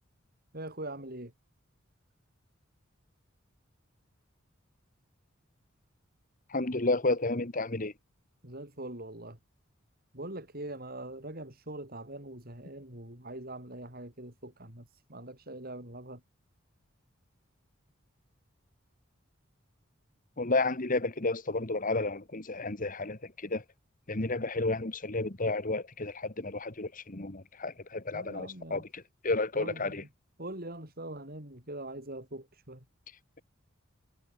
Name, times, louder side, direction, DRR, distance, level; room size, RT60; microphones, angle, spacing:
voice 1, 0.5-1.3 8.4-9.4 10.1-16.2 28.1-28.8 29.5-30.1 30.4-32.8, right 1 dB, 50° right, 7.8 m, -42 dB
voice 2, 6.5-7.9 20.4-23.6 24.1-30.0, left 2 dB, 40° left, 1.8 m, -31 dB
head